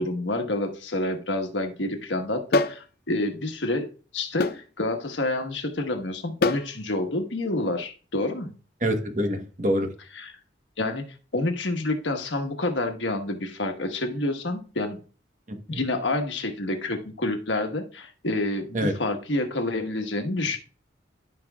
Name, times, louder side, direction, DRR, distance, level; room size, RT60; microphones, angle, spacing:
voice 1, 0.0-3.9 4.1-8.5 10.2-10.3 10.8-11.1 11.3-15.0 15.7-20.6, left 2 dB, 80° left, 1.3 m, -28 dB
sound 1, 2.5-2.8 4.4-4.6 6.4-6.7, left 3 dB, 55° left, 0.5 m, -23 dB
voice 2, 8.8-9.9 15.5-15.8 18.7-18.9, equal, 40° right, 1.1 m, -26 dB
13.5 x 5.2 x 2.3 m
head